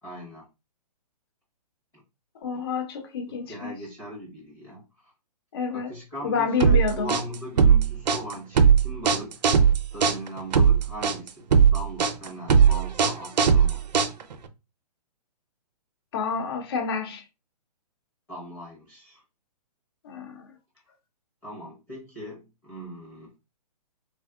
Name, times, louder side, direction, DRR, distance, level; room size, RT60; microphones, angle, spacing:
voice 1, 0.0-0.4 1.9-2.0 3.5-5.1 5.7-9.4 9.9-13.8 18.3-19.2 21.4-23.3, equal, 10° left, 0.8 m, -39 dB
voice 2, 2.4-3.7 5.5-5.9 6.2-7.1 16.1-17.2 20.0-20.4, left 5 dB, 35° left, 0.4 m, -28 dB
sound 1, 6.6-14.5, right 6 dB, 85° right, 0.5 m, -19 dB
3.4 x 2.3 x 2.3 m
hypercardioid pair, 165°, 21 cm